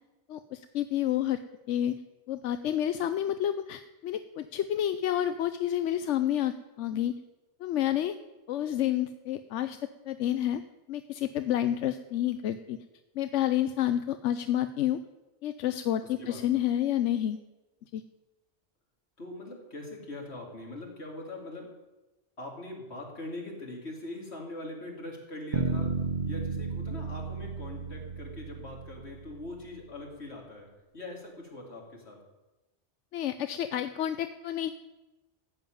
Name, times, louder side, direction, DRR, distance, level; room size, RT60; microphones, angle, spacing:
voice 1, 0.3-1.4 1.7-1.9 2.3-7.1 7.6-8.1 8.5-9.8 10.1-10.6 10.9-12.8 13.1-15.0 15.4-17.4 17.9-18.0 33.1-34.7, left 11 dB, 90° left, 11 dB, 1.0 m, -29 dB
voice 2, 19.2-21.7 22.4-25.9 26.2-30.7 30.9-32.2, left 1 dB, 65° left, -1 dB, 3.4 m, -42 dB
sound 1, 25.5-29.6, right 5 dB, 50° right, 1.1 m, -33 dB
14.5 x 7.5 x 9.3 m, 1.1 s
omnidirectional pair, 1.2 m